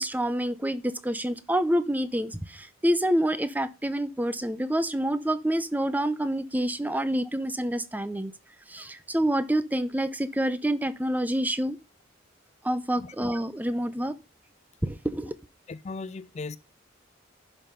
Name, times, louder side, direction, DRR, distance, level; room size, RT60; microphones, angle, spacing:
voice 1, 0.0-8.3 8.7-11.8 12.6-14.1 14.8-15.4, right 1 dB, 10° right, 0.7 m, -27 dB
voice 2, 15.7-16.6, left 3 dB, 35° left, 0.4 m, -37 dB
11.0 x 5.7 x 5.2 m
head